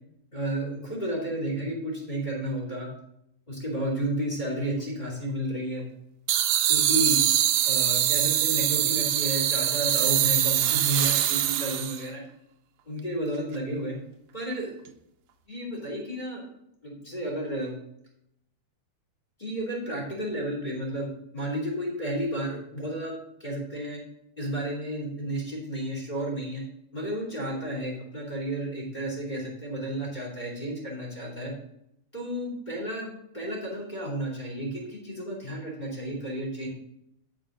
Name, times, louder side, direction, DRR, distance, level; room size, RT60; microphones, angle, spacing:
voice 1, 0.3-2.9 3.5-5.8 6.7-7.2 7.6-12.2 12.9-13.9 14.3-14.8 15.5-16.5 16.8-17.7 19.4-23.1 23.4-24.0 24.4-26.6 26.9-31.5 32.1-36.7, right 1 dB, 15° left, -1 dB, 2.5 m, -32 dB
sound 1, 6.3-12.0, right 11 dB, 75° right, 1.8 m, -23 dB
8.9 x 8.7 x 3.8 m, 0.78 s
omnidirectional pair, 3.5 m